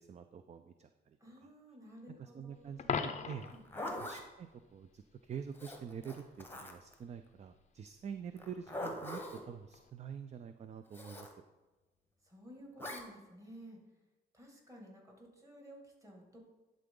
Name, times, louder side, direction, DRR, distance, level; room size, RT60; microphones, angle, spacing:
voice 1, 0.0-1.2 1.4-1.5 2.2-3.5 4.0-11.3, right 7 dB, 35° right, 9 dB, 0.4 m, -46 dB
voice 2, 1.2-2.9 3.5-3.9 12.2-13.8 14.3-16.4, equal, 15° right, 0 dB, 2.1 m, -54 dB
Coin (dropping), 2.8-3.6 9.7-9.9, left 6 dB, 35° left, 0.5 m, -37 dB
Zipper (clothing), 3.4-4.2 5.5-6.9 8.4-9.4 10.9-11.3 12.8-13.0, left 1 dB, 10° left, 1.0 m, -43 dB
11.0 x 3.8 x 3.7 m, 1.1 s
cardioid pair, 90°, 20 cm